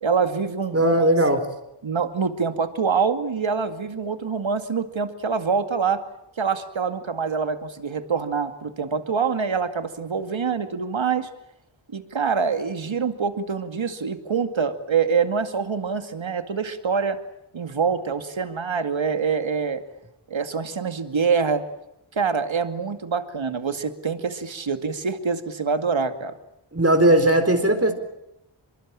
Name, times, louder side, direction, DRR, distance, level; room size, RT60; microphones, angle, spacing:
voice 1, 0.0-1.0 1.8-6.0 6.4-11.3 11.9-17.2 17.5-19.8 20.3-21.6 22.1-26.3, right 5 dB, 70° right, 9 dB, 2.3 m, -25 dB
voice 2, 0.7-1.5 26.7-27.9, right 1 dB, 30° right, 7 dB, 4.1 m, -18 dB
24.0 x 22.5 x 8.9 m, 0.86 s
cardioid pair, 45°, 49 cm